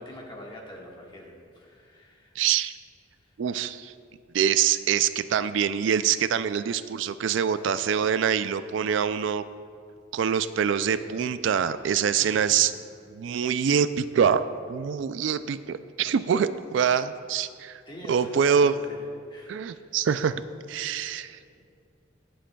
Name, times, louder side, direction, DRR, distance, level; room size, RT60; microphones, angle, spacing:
voice 1, 0.0-2.3 3.1-3.4 7.2-7.4 12.2-12.7 17.9-19.0 19.3-19.9 21.3-21.6, equal, 25° left, -2 dB, 1.6 m, -44 dB
voice 2, 2.4-2.7 3.4-3.9 4.3-9.4 10.1-12.7 13.1-17.8 18.1-18.7 19.5-20.4 20.7-21.4, right 7 dB, 70° right, 13 dB, 0.3 m, -25 dB
22.5 x 7.6 x 2.3 m, 2.3 s
head